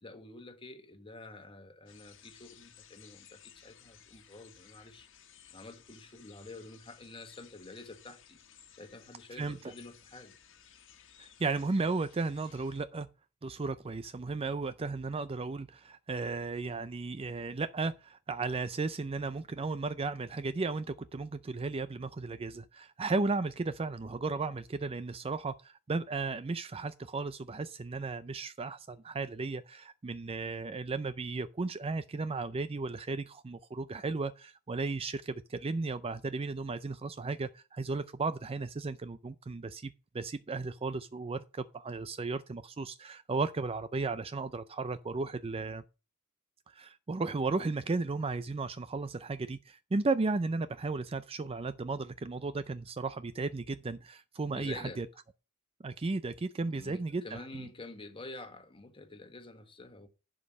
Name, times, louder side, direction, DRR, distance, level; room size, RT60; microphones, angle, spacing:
voice 1, 0.0-5.1 5.5-8.4 8.7-10.3 54.5-55.0 56.7-60.1, left 2 dB, 25° left, 1.4 m, -48 dB
sound 1, 1.9-12.8, left 9 dB, 60° left, 1.6 m, -58 dB
voice 2, 11.2-13.1 13.4-45.8 46.7-55.1 55.8-57.2 57.5-57.7, right 3 dB, 25° right, 0.4 m, -35 dB
11.0 x 5.3 x 6.2 m
head